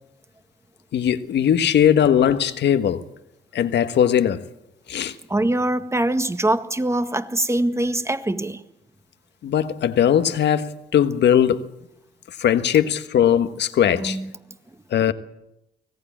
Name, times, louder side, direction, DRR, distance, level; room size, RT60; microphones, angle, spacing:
voice 1, 0.9-3.1 3.5-4.4 4.9-5.1 9.4-11.7 12.4-14.2 14.9-15.1, left 9 dB, 65° left, 1.5 m, -19 dB
voice 2, 5.3-8.6 13.9-14.6, right 1 dB, 15° right, 1.7 m, -23 dB
25.0 x 18.0 x 7.4 m
hypercardioid pair, 50°, 19 cm